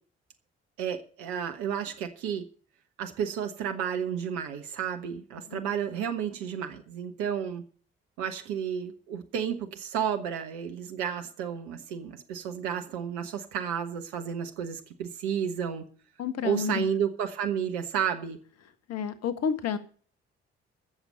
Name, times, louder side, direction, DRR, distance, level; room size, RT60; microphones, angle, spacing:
voice 1, 0.8-2.5 3.0-7.6 8.2-15.9 16.4-18.4, right 8 dB, 70° right, 6 dB, 1.3 m, -32 dB
voice 2, 16.2-16.9 18.9-19.8, left 7 dB, 55° left, 14 dB, 1.5 m, -30 dB
14.0 x 7.1 x 7.0 m, 0.42 s
figure-of-eight pair, 40°, 30 cm